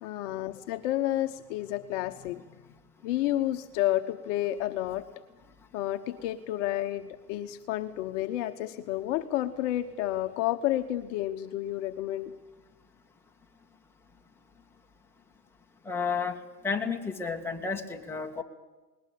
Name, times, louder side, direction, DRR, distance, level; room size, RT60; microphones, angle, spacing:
voice 1, 0.0-2.5 3.0-5.1 5.7-12.3, left 14 dB, 50° left, 7 dB, 1.2 m, -30 dB
voice 2, 15.8-16.4 16.6-18.4, left 5 dB, 5° left, 1 dB, 2.0 m, -31 dB
20.0 x 19.5 x 8.6 m, 1.2 s
hypercardioid pair, 120°, 46 cm